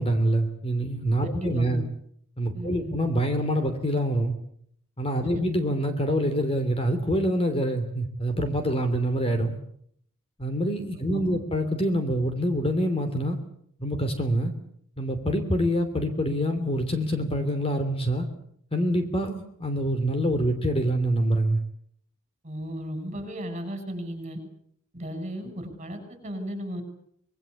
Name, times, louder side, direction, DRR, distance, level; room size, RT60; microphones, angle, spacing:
voice 1, 0.0-1.8 2.4-4.3 5.0-9.6 10.4-13.4 13.8-14.5 15.0-18.3 18.7-21.6, equal, 25° left, 7 dB, 3.0 m, -25 dB
voice 2, 1.2-1.8 2.5-3.0 5.2-5.4 11.0-11.4 22.4-24.4 24.9-26.8, equal, 30° right, 8 dB, 7.3 m, -35 dB
25.5 x 21.5 x 8.4 m, 0.68 s
head